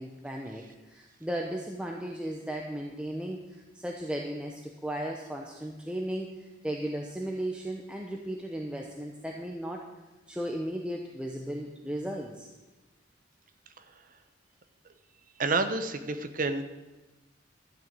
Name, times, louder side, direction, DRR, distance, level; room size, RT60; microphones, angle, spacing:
voice 1, 0.0-9.8 10.3-12.5, right 1 dB, 5° right, 0 dB, 0.9 m, -36 dB
voice 2, 15.4-16.6, right 3 dB, 45° right, 9 dB, 0.9 m, -28 dB
12.5 x 6.5 x 8.9 m, 1.1 s
head